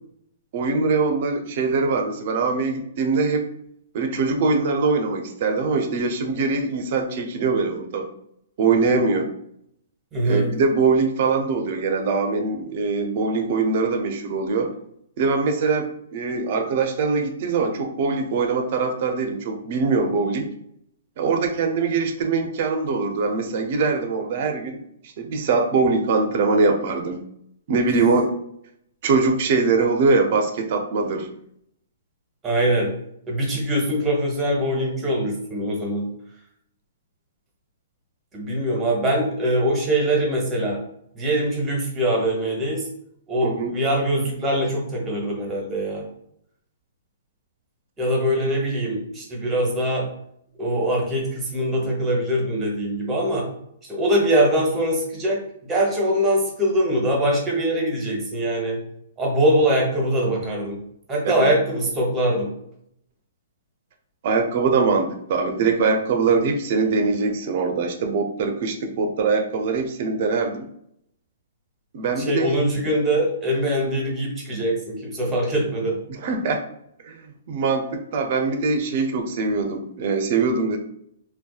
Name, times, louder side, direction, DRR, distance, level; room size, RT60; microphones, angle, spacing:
voice 1, 0.5-3.5 3.9-8.1 8.6-9.3 10.2-14.7 15.2-20.5 21.2-24.8 25.2-27.2 27.7-28.3 29.0-31.3 43.4-43.8 61.2-61.5 64.2-70.7 71.9-72.6 76.1-76.6 77.0-80.8, right 4 dB, 50° right, 5 dB, 0.4 m, -22 dB
voice 2, 10.1-10.5 32.4-32.9 33.3-36.1 38.3-40.8 41.1-42.8 43.3-46.0 48.0-50.1 50.6-53.5 53.9-55.4 55.7-58.8 59.2-60.8 61.1-62.5 72.2-75.9, right 1 dB, 15° right, -1 dB, 0.9 m, -22 dB
2.6 x 2.2 x 2.3 m, 0.71 s
hypercardioid pair, 140°, 0 cm